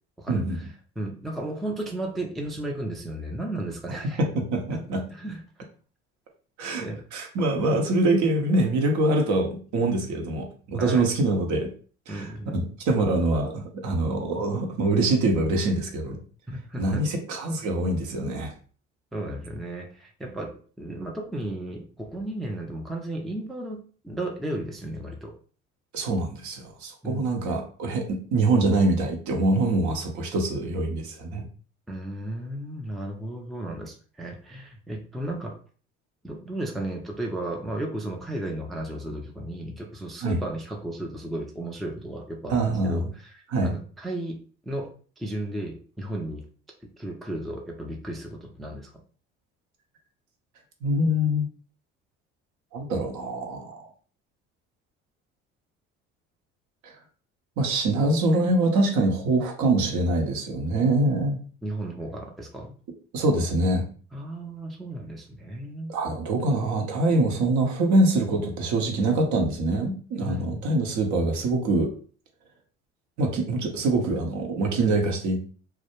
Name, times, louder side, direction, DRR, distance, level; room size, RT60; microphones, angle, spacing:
voice 1, 0.2-4.2 4.7-4.8 5.1-5.4 6.7-7.0 10.8-11.1 12.1-12.6 16.5-17.0 19.1-25.3 27.0-27.3 31.9-35.6 36.2-44.4 44.6-46.5 47.0-49.0 61.6-62.7 64.1-66.0 70.2-70.7, right 1 dB, ahead, 0 dB, 0.4 m, -34 dB
voice 2, 4.2-5.0 6.6-11.7 12.1-12.2 12.5-16.2 16.8-18.5 25.9-31.4 40.2-40.4 42.5-43.1 43.5-43.7 50.8-51.5 52.7-53.9 56.8-56.9 57.6-61.4 63.1-63.9 65.9-71.9 73.2-75.4, right 2 dB, 55° right, 3 dB, 0.8 m, -24 dB
2.2 x 2.0 x 2.9 m, 0.41 s
hypercardioid pair, 60°, 34 cm